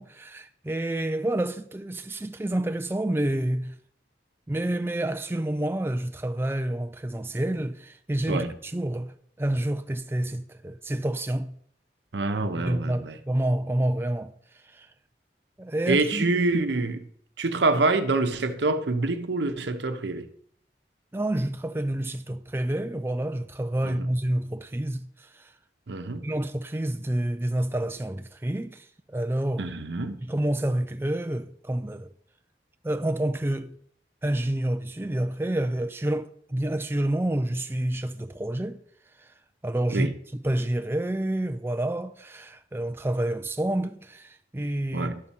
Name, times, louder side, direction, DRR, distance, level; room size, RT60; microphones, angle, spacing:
voice 1, 0.0-3.8 4.5-11.5 12.5-14.3 14.6-14.9 15.6-16.2 21.1-25.5 26.2-29.7 30.2-32.1 32.8-33.7 34.2-38.8 39.2-39.3 39.6-40.2 40.4-45.1, right 1 dB, 15° right, 0.4 m, -28 dB
voice 2, 12.1-13.2 15.9-17.1 17.4-20.3 23.8-24.1 25.9-26.3 29.6-30.2 39.9-40.1 44.9-45.2, right 3 dB, 85° right, 0.9 m, -26 dB
11.0 x 4.2 x 7.2 m
head